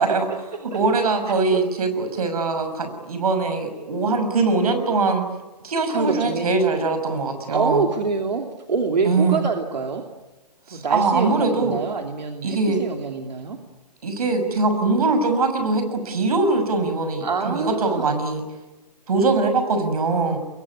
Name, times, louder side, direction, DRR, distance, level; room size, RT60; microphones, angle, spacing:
voice 1, 0.0-5.2 5.6-7.9 9.0-9.4 10.7-11.8 12.4-12.8 14.0-18.4 19.1-20.4, right 3 dB, 60° right, 8 dB, 6.4 m, -22 dB
voice 2, 5.9-6.5 7.5-10.1 10.7-13.6 17.2-18.1, right 4 dB, 85° right, 4 dB, 2.8 m, -25 dB
24.5 x 23.0 x 9.9 m, 1.1 s
hypercardioid pair, 165°, 21 cm